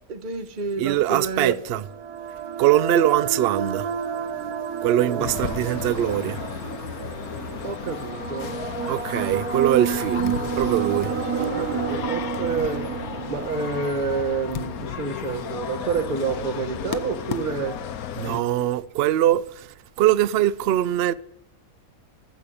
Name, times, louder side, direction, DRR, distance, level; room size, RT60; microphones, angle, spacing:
voice 1, 0.1-1.6 5.1-5.3 7.6-8.6 11.5-12.9 13.3-17.8 18.3-18.7, right 5 dB, 40° right, 1.0 m, -28 dB
voice 2, 0.8-1.8 2.6-3.9 4.4-4.5 4.8-6.4 8.9-11.1 18.2-21.1, right 12 dB, 70° right, 0.5 m, -22 dB
sound 1, 1.3-15.4, right 7 dB, 85° right, 1.4 m, -30 dB
sound 2, 5.2-18.4, left 8 dB, 80° left, 1.2 m, -33 dB
14.5 x 5.1 x 8.4 m
omnidirectional pair, 1.6 m